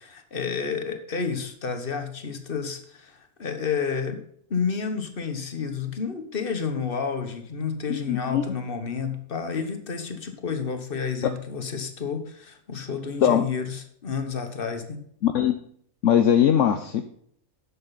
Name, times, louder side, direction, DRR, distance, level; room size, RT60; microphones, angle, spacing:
voice 1, 0.0-4.2 4.5-15.0, left 6 dB, 45° left, 7 dB, 1.5 m, -30 dB
voice 2, 7.9-8.4 13.2-13.4 15.2-15.5 16.0-17.1, left 9 dB, 65° left, 8 dB, 1.0 m, -20 dB
11.0 x 7.6 x 4.1 m, 0.66 s
omnidirectional pair, 1.4 m